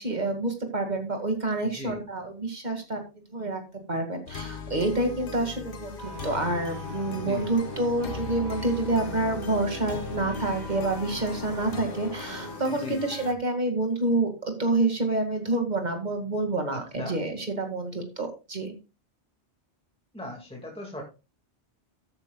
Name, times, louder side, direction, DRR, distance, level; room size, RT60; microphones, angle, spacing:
voice 1, 0.0-3.0 3.3-3.6 3.9-18.7, right 2 dB, 40° right, 5 dB, 2.3 m, -28 dB
voice 2, 1.6-2.0 7.2-7.5 12.7-13.0 16.7-17.1 20.1-21.0, left 1 dB, 5° left, -1 dB, 2.1 m, -38 dB
sound 1, 4.3-13.3, left 5 dB, 55° left, 1.2 m, -39 dB
sound 2, 6.0-12.7 12.9-13.1, equal, 20° right, 3.5 m, -41 dB
14.0 x 9.5 x 2.4 m, 0.29 s
omnidirectional pair, 1.1 m